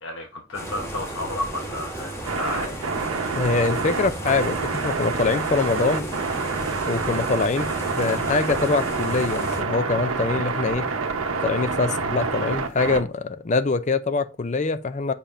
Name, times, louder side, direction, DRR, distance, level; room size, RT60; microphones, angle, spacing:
voice 1, 0.0-2.9 11.8-12.1, left 1 dB, 65° left, 1.1 m, -32 dB
sound 1, 0.5-9.6, right 1 dB, 15° left, 1.3 m, -34 dB
sound 2, 2.2-13.0, right 4 dB, 90° right, 0.9 m, -27 dB
voice 2, 3.4-6.1 6.8-7.7 8.0-10.9 11.4-15.1, left 3 dB, 35° left, 0.4 m, -24 dB
6.9 x 5.6 x 2.6 m
head